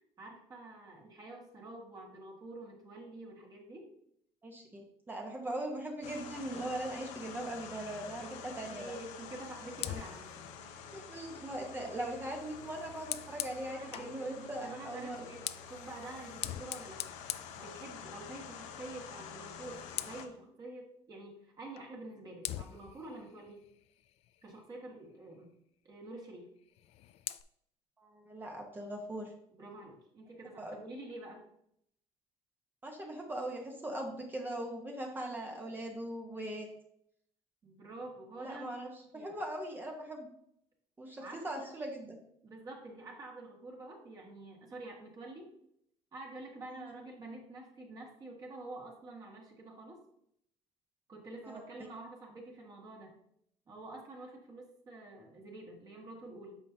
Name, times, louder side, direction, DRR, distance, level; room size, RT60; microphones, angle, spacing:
voice 1, 0.2-3.9 7.8-10.4 13.7-17.0 17.6-23.7 24.4-25.5 25.8-26.5 29.5-31.4 37.6-38.7 39.1-39.4 41.2-41.7 42.4-45.5 46.1-50.0 51.1-53.2 53.7-56.6, right 2 dB, 35° right, -1 dB, 1.8 m, -48 dB
voice 2, 4.4-9.0 10.9-15.3 28.0-29.3 30.6-30.8 32.8-36.7 38.4-40.3 41.0-42.2 46.7-46.9 51.4-51.6, right 1 dB, 15° right, 1 dB, 1.1 m, -40 dB
sound 1, 6.0-20.3, left 7 dB, 80° left, 0.8 m, -48 dB
Fire, 9.7-14.2 15.1-18.3 18.7-19.0 19.3-20.4 21.8-21.9 22.4-24.7 26.6-27.4, left 13 dB, 55° left, 0.4 m, -44 dB
8.9 x 5.7 x 2.8 m, 0.73 s
cardioid pair, 135°, 12 cm